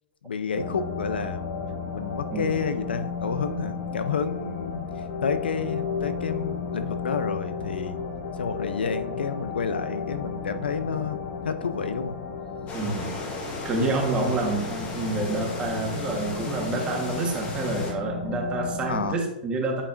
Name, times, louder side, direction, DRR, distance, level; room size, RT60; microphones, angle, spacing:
voice 1, 0.2-1.5 1.9-4.9 5.2-8.0 8.4-11.2 11.4-12.2 18.9-19.2, left 5 dB, 90° left, 11 dB, 0.6 m, -30 dB
sound 1, 0.5-19.1, left 5 dB, 65° left, 1.4 m, -34 dB
sound 2, 12.7-17.9, left 2 dB, 30° left, 1.4 m, -36 dB
voice 2, 12.7-13.2 13.6-19.8, right 2 dB, 20° right, 0 dB, 1.4 m, -28 dB
8.4 x 4.9 x 2.6 m, 0.93 s
hypercardioid pair, 135°, 5 cm